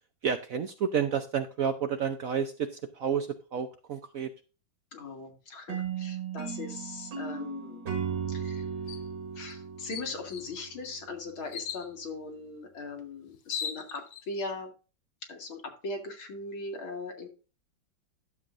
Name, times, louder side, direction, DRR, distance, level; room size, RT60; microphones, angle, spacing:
voice 1, 0.2-4.3, right 7 dB, 65° right, 8 dB, 0.8 m, -30 dB
voice 2, 4.9-7.9 8.3-8.7 9.3-14.7 15.3-17.3, left 3 dB, 85° left, 4 dB, 2.9 m, -39 dB
sound 1, 5.7-10.8, right 7 dB, 80° right, 2.5 m, -36 dB
sound 2, 8.9-9.1 9.5-9.6 9.9-10.5 11.5-11.9 13.0-13.1 13.3-14.2, left 8 dB, 60° left, 1.0 m, -37 dB
11.5 x 7.2 x 2.5 m, 0.34 s
omnidirectional pair, 2.2 m